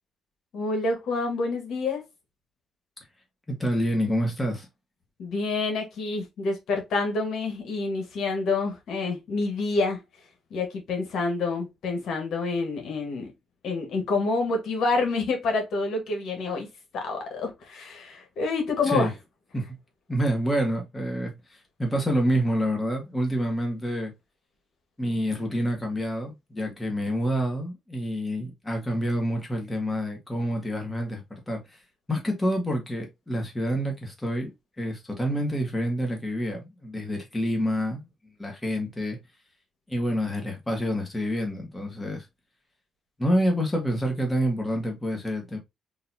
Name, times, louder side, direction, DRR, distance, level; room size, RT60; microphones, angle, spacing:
voice 1, 0.5-2.0 5.2-10.0 10.5-13.3 13.6-16.7 16.9-19.1, left 3 dB, 75° left, 1.5 m, -27 dB
voice 2, 3.5-4.7 18.8-19.1 19.5-19.8 20.1-24.1 25.0-31.8 32.1-38.1 38.4-39.2 39.9-42.2 43.2-45.6, equal, 15° left, 1.5 m, -28 dB
3.9 x 2.8 x 2.7 m
cardioid pair, 90°, 0 cm